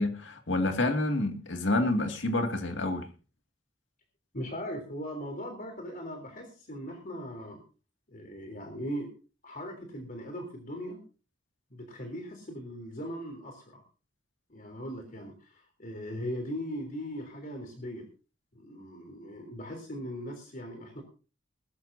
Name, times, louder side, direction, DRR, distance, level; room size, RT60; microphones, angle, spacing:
voice 1, 0.0-3.1, left 2 dB, 75° left, 2.3 m, -28 dB
voice 2, 4.3-7.6 8.1-9.1 9.4-11.0 11.7-13.8 14.5-18.0 18.5-21.0, equal, 45° left, 3.5 m, -39 dB
20.5 x 13.5 x 2.7 m
head